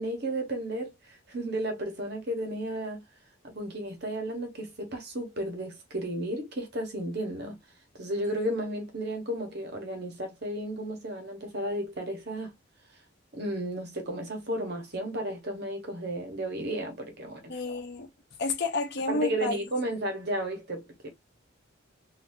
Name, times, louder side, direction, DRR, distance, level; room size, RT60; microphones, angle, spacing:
voice 1, 0.0-3.0 3.4-7.5 8.0-12.5 13.3-17.6 19.1-21.1, right 1 dB, 50° right, 1.3 m, -33 dB
voice 2, 17.5-18.1 18.4-19.6, left 2 dB, 50° left, 0.8 m, -30 dB
4.1 x 2.7 x 2.7 m
head